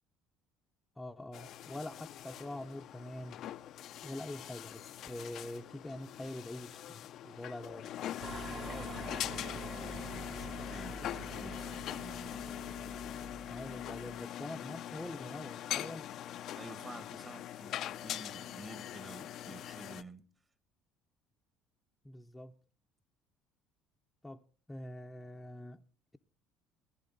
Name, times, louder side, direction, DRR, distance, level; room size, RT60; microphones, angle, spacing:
voice 1, 1.0-3.4 4.0-7.9 13.5-16.1 22.0-22.5 24.2-24.4 24.7-25.8, left 1 dB, 10° left, 0.7 m, -44 dB
sound 1, 1.3-20.0, left 11 dB, 60° left, 0.5 m, -42 dB
sound 2, 8.2-14.2, right 3 dB, 40° right, 1.2 m, -46 dB
voice 2, 8.6-12.5 12.9-13.0 16.5-20.3, right 2 dB, 20° right, 1.3 m, -51 dB
18.5 x 10.5 x 3.9 m
supercardioid pair, 95°, 0 cm